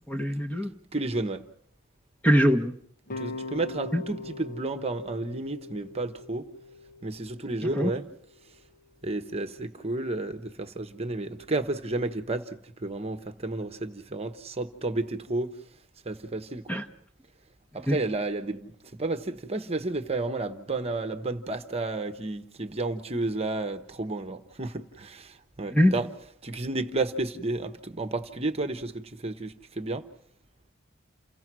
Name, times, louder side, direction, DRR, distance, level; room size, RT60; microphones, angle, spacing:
voice 1, 0.1-0.7 2.2-2.7 3.9-4.0 7.6-7.9 16.7-16.8 17.9-18.0 25.7-25.9, equal, 5° left, 5 dB, 1.1 m, -23 dB
voice 2, 0.9-1.4 3.2-6.5 7.0-8.0 9.0-15.5 16.0-16.8 17.7-26.1 26.4-30.0, right 2 dB, 30° right, 8 dB, 1.1 m, -32 dB
sound 1, 3.1-8.2, left 3 dB, 45° left, 0.8 m, -41 dB
28.5 x 16.5 x 6.2 m, 0.65 s
head